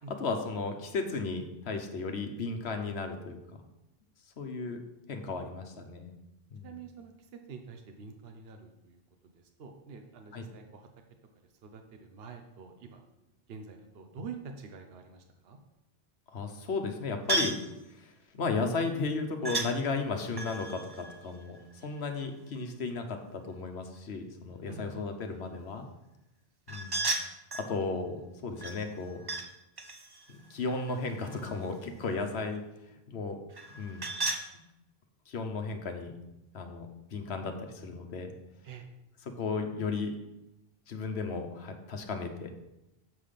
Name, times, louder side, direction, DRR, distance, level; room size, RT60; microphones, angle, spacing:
voice 1, 0.1-3.4 4.4-4.8 5.1-6.1 6.5-6.8 10.3-10.5 16.3-17.5 18.0-21.6 21.8-25.9 26.7-27.0 27.6-29.2 30.3-32.6 33.1-33.4 33.8-34.0 35.3-36.1 36.5-38.3 39.4-40.1 40.9-42.5, left 4 dB, 80° left, 5 dB, 1.2 m, -34 dB
voice 2, 5.2-5.5 6.6-10.9 11.6-13.0 13.5-15.6 24.7-24.9 38.6-38.9, right 5 dB, 70° right, 4 dB, 1.0 m, -47 dB
sound 1, 17.3-17.7 19.4-19.7 20.3-22.1 26.7-27.7 28.6-29.5 29.8-31.7 33.5-34.5, right 2 dB, 25° right, 0.6 m, -35 dB
7.4 x 5.7 x 5.1 m, 0.92 s
omnidirectional pair, 1.1 m